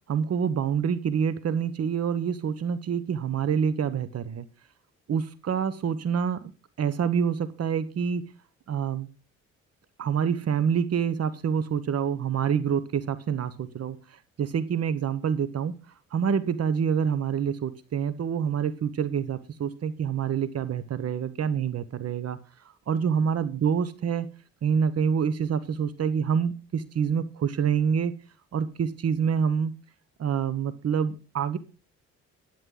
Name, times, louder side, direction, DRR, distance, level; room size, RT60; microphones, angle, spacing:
voice 1, 0.1-4.4 5.1-6.5 6.8-8.2 8.7-9.1 10.0-14.0 14.4-15.7 16.1-22.4 22.9-24.3 24.6-28.1 28.5-29.7 30.2-31.6, right 7 dB, 55° right, 14 dB, 1.1 m, -27 dB
11.5 x 8.7 x 3.9 m, 0.35 s
cardioid pair, 90°, 30 cm